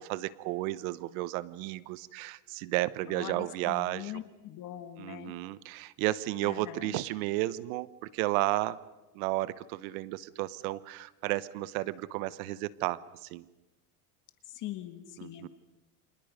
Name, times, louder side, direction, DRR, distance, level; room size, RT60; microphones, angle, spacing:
voice 1, 0.0-4.1 5.0-8.8 9.1-13.5 15.2-15.5, right 17 dB, 70° right, 17 dB, 1.0 m, -33 dB
voice 2, 3.1-5.3 6.4-7.0 14.5-15.5, left 13 dB, 45° left, 8 dB, 1.8 m, -42 dB
29.5 x 26.0 x 5.4 m, 1.1 s
supercardioid pair, 135°, 44 cm